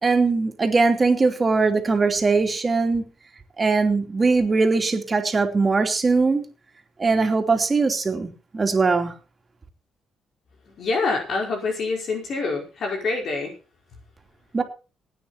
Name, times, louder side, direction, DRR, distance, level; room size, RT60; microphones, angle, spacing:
voice 1, 0.0-3.0 3.6-6.5 7.0-9.1 14.5-14.6, right 4 dB, 30° right, 5 dB, 3.0 m, -21 dB
voice 2, 10.8-13.5, left 3 dB, 60° left, 1 dB, 4.9 m, -26 dB
18.0 x 9.4 x 4.3 m, 0.33 s
cardioid pair, 90°, 0 cm